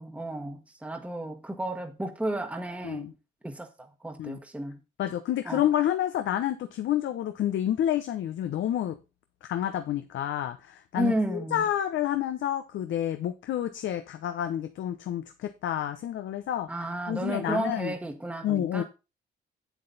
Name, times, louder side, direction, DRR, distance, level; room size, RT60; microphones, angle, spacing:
voice 1, 0.0-3.1 3.4-4.8 5.4-5.6 10.9-11.6 16.7-18.8, right 1 dB, 5° right, 1.3 m, -32 dB
voice 2, 5.0-9.0 9.4-17.9 18.4-18.8, left 11 dB, 70° left, 0.9 m, -29 dB
8.1 x 7.9 x 4.0 m
cardioid pair, 90°, 20 cm